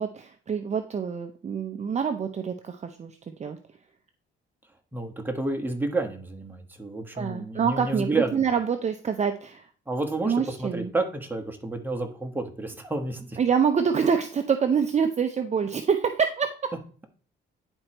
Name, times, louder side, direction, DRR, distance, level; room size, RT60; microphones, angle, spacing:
voice 1, 0.0-3.6 7.1-9.7 10.3-10.9 13.4-16.7, right 6 dB, 35° right, 6 dB, 0.6 m, -26 dB
voice 2, 4.9-8.5 9.9-13.4, right 2 dB, 10° right, 3 dB, 1.4 m, -30 dB
10.5 x 4.4 x 3.0 m, 0.43 s
cardioid pair, 90°, 20 cm